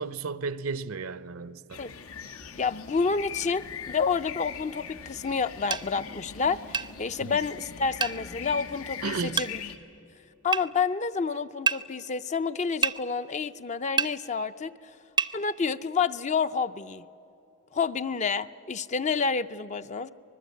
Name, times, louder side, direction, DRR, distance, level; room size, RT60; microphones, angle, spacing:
voice 1, 0.0-1.8 7.2-7.4 9.0-9.4, right 4 dB, 80° right, 0.7 m, -33 dB
sound 1, 1.7-9.8, left 7 dB, 85° left, 1.3 m, -41 dB
voice 2, 2.6-9.6 10.4-14.7 15.3-17.0 17.7-20.1, left 5 dB, 35° left, 0.5 m, -29 dB
sound 2, 5.7-5.9 6.7-6.9 8.0-8.2 9.4-9.5 10.5-10.7 11.7-11.8 12.8-13.0 14.0-14.1 15.2-15.3, right 6 dB, 20° right, 0.5 m, -26 dB
25.0 x 20.5 x 8.4 m
head